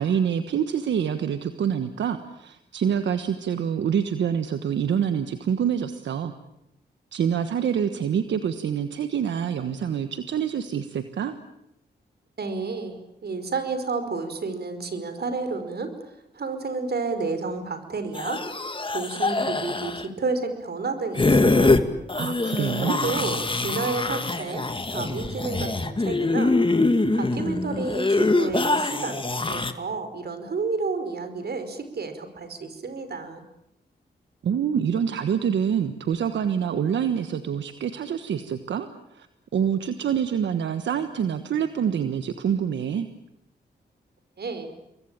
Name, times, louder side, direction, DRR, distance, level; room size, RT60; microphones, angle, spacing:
voice 1, 0.0-6.3 7.1-11.3 22.1-23.0 34.4-38.9 39.1-39.3 39.5-43.1, right 8 dB, 90° right, 10 dB, 1.4 m, -26 dB
voice 2, 12.4-18.4 18.9-21.7 22.8-26.6 27.1-33.4 44.4-44.7, right 4 dB, 65° right, 9 dB, 5.0 m, -31 dB
sound 1, 18.2-20.0 21.2-21.8 22.1-29.7, left 2 dB, 30° left, 2.3 m, -24 dB
28.5 x 22.5 x 9.0 m, 0.80 s
cardioid pair, 60°, 18 cm